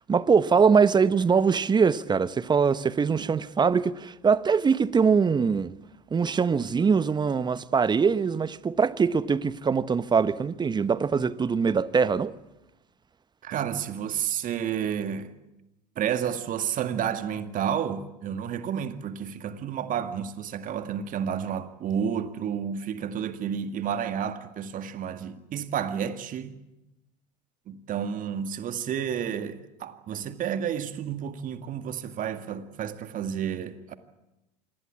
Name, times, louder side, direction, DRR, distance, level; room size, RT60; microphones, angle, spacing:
voice 1, 0.1-5.7 6.1-12.3, right 5 dB, 20° right, 1.0 m, -22 dB
voice 2, 13.4-15.3 16.0-26.6 27.7-33.9, right 8 dB, 40° right, 2.0 m, -31 dB
26.5 x 21.0 x 8.6 m
hypercardioid pair, 80°, 21 cm